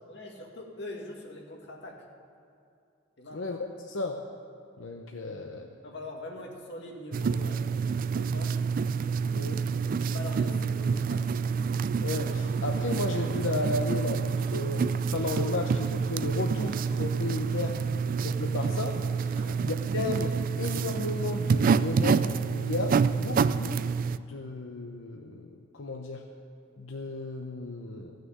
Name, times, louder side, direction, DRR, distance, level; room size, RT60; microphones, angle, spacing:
voice 1, 0.0-2.0 3.2-3.4 5.2-7.8 8.1-8.6 9.9-11.3 19.3-19.6, left 1 dB, 65° left, -1 dB, 2.1 m, -43 dB
voice 2, 3.8-4.2 4.8-5.6 9.3-9.6 12.0-17.8 18.2-23.8 24.3-26.2 26.8-28.2, left 2 dB, 90° left, 2 dB, 0.8 m, -34 dB
sound 1, 7.1-24.2, right 5 dB, 45° right, 0.3 m, -28 dB
15.0 x 6.6 x 9.3 m, 2.5 s
head